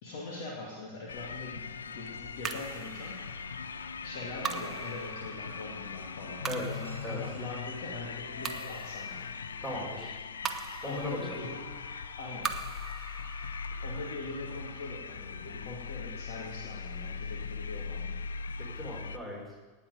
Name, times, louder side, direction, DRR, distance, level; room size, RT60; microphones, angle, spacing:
voice 1, 0.0-3.3 4.0-9.4 10.9-11.7 12.2-12.6 13.8-18.2, left 2 dB, 50° left, -2 dB, 2.5 m, -42 dB
sound 1, 1.1-19.2, left 5 dB, 70° left, 0.5 m, -40 dB
sound 2, 1.5-9.1, equal, 85° left, 1.4 m, -53 dB
sound 3, 2.4-16.9, right 6 dB, 20° right, 0.9 m, -43 dB
voice 2, 6.5-7.2 9.6-10.2 10.8-11.4 18.6-19.4, left 1 dB, 15° left, -2 dB, 5.0 m, -38 dB
18.5 x 8.9 x 5.3 m, 1.3 s
figure-of-eight pair, 90°, 0 cm